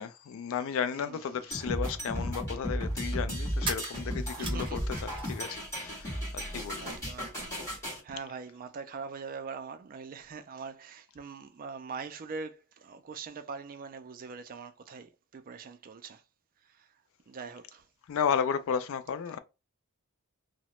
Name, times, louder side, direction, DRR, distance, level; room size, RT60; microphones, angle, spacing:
voice 1, 0.0-4.8 5.3-6.9 18.1-19.4, left 7 dB, 65° left, 0.3 m, -33 dB
voice 2, 0.9-1.5 4.4-4.9 6.8-16.2 17.3-17.8, right 5 dB, 40° right, 0.3 m, -43 dB
sound 1, 1.3-1.4 3.6-5.5 5.8-6.7, right 4 dB, 25° right, 0.8 m, -40 dB
sound 2, 1.5-8.0, equal, 15° left, 1.5 m, -34 dB
2.8 x 2.1 x 2.9 m
head